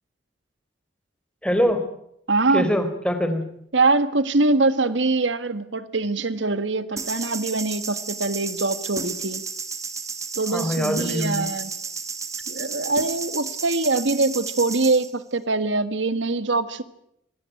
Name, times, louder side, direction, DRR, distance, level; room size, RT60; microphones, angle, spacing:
voice 1, 1.4-1.8 2.5-3.5 10.5-11.5, equal, 5° left, 7 dB, 4.0 m, -23 dB
voice 2, 2.3-2.7 3.7-9.4 10.4-11.7 12.5-16.8, right 3 dB, 85° right, 12 dB, 1.7 m, -23 dB
sound 1, 7.0-15.1, right 5 dB, 15° right, 1.8 m, -32 dB
26.0 x 20.0 x 9.2 m, 0.74 s
head